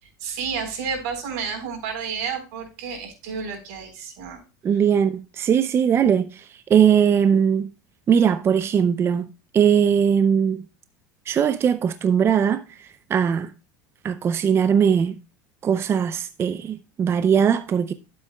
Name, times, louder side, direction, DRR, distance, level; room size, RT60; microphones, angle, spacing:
voice 1, 0.0-4.4 4.7-4.8, right 6 dB, 75° right, 4.1 m, -31 dB
voice 2, 4.6-7.7 8.1-9.3 9.5-10.6 11.3-13.5 14.0-15.1 15.6-17.9, right 8 dB, 25° right, 0.5 m, -20 dB
12.5 x 7.8 x 2.3 m
supercardioid pair, 120°, 9 cm